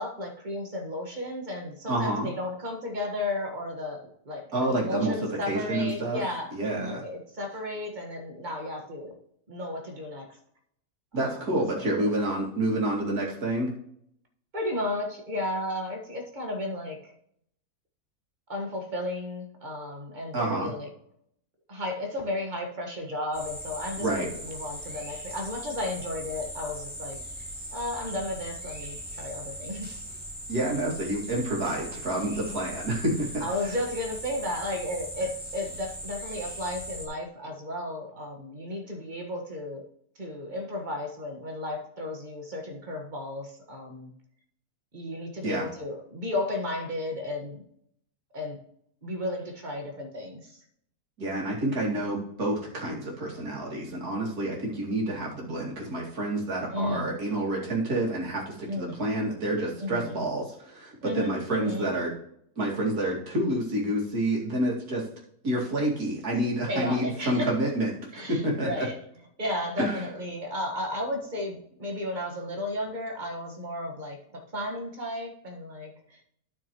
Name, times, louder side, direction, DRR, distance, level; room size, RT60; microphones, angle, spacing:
voice 1, 0.0-9.2 9.5-10.4 11.1-12.1 14.5-17.1 18.5-20.9 21.7-27.3 27.7-30.0 33.4-39.8 40.2-44.1 44.9-47.6 48.3-48.6 49.0-50.6 56.7-57.2 58.6-59.0 59.8-60.2 61.0-62.0 66.7-67.5 68.1-68.9 69.4-76.2, left 1 dB, 30° right, 1 dB, 1.6 m, -34 dB
voice 2, 1.9-2.3 4.5-6.2 6.5-7.0 11.1-13.7 20.3-20.7 24.0-24.3 30.5-33.5 45.4-45.7 51.2-62.1 62.6-65.0 65.4-68.0 68.3-68.9 69.8-69.9, right 1 dB, 70° right, -3 dB, 2.7 m, -28 dB
sound 1, 23.3-37.1, equal, 5° right, 2.1 m, -39 dB
12.0 x 6.4 x 3.0 m, 0.70 s
omnidirectional pair, 1.7 m